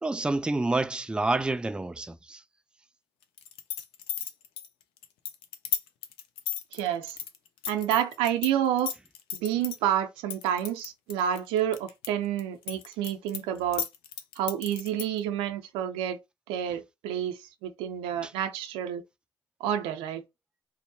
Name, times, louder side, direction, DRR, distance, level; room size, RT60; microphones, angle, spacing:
voice 1, 0.0-2.4 18.2-18.3, right 2 dB, 10° right, 0.3 m, -28 dB
sound 1, 3.4-8.5 8.8-9.8 10.3-12.1 12.4-15.2, left 9 dB, 85° left, 0.4 m, -34 dB
voice 2, 6.7-7.2 7.7-8.9 9.3-13.9 14.4-16.2 16.5-19.0 19.6-20.2, right 10 dB, 85° right, 0.4 m, -29 dB
2.6 x 2.1 x 2.6 m
hypercardioid pair, 45°, 9 cm